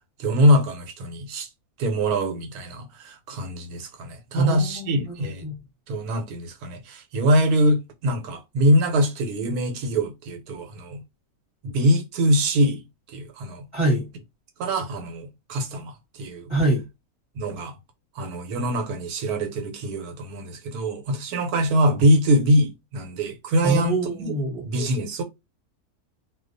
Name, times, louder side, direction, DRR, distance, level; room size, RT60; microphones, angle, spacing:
voice 1, 0.2-1.5 1.8-5.4 5.9-11.0 11.6-12.8 13.1-13.6 14.6-16.5 17.4-17.7 18.2-24.3 24.6-25.2, equal, 85° right, 1.1 m, -23 dB
voice 2, 4.3-5.6 13.7-14.1 16.5-16.9 23.6-24.6, right 2 dB, 25° right, 1.0 m, -24 dB
2.4 x 2.2 x 2.5 m
omnidirectional pair, 1.6 m